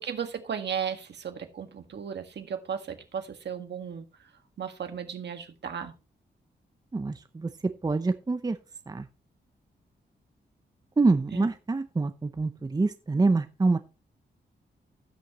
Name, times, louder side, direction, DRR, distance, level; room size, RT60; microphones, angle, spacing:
voice 1, 0.0-4.1 4.6-5.9 11.3-11.5, right 7 dB, 70° right, 6 dB, 1.8 m, -35 dB
voice 2, 6.9-8.6 8.9-9.1 11.0-13.8, right 3 dB, 20° right, 10 dB, 0.7 m, -26 dB
16.0 x 6.4 x 3.1 m, 0.31 s
cardioid pair, 85°, 19 cm